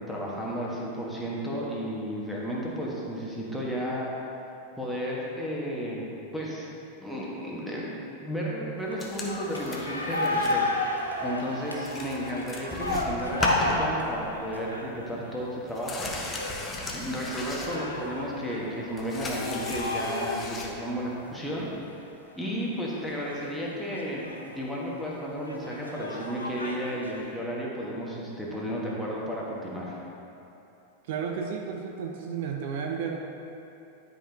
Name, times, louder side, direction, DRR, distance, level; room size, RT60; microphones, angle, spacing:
voice 1, 0.0-4.1 4.8-6.7 7.0-8.0 8.2-10.6 11.2-16.5 16.9-21.7 22.4-24.2 24.5-30.0, equal, ahead, -6 dB, 1.5 m, -33 dB
sound 1, 8.9-15.4 16.1-20.6 21.1-21.2 21.5-21.6 22.3-22.6 23.0-24.7 25.4-27.3, left 2 dB, 80° left, 0.8 m, -33 dB
sound 2, 9.0-10.6 10.9-11.2 11.5-11.6 11.8-14.5 14.7-14.9 15.1-18.3 18.6-20.7 21.8-21.9, left 2 dB, 15° left, 0.9 m, -36 dB
voice 2, 31.0-33.2, right 6 dB, 50° right, 2 dB, 0.5 m, -32 dB
11.0 x 5.2 x 2.9 m, 2.9 s
figure-of-eight pair, 90°, 0 cm